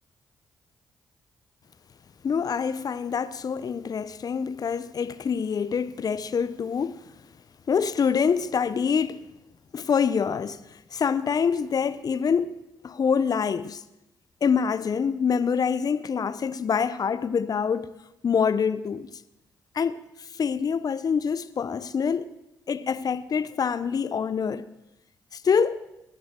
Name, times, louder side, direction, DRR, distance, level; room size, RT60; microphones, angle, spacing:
voice 1, 2.2-7.0 7.7-9.2 9.7-10.6 10.9-12.6 12.8-13.8 14.4-17.9 18.2-19.1 19.7-22.3 22.7-24.7 25.3-25.8, left 6 dB, 50° left, 0.6 m, -25 dB
19.5 x 12.5 x 3.7 m
hypercardioid pair, 40°, 8 cm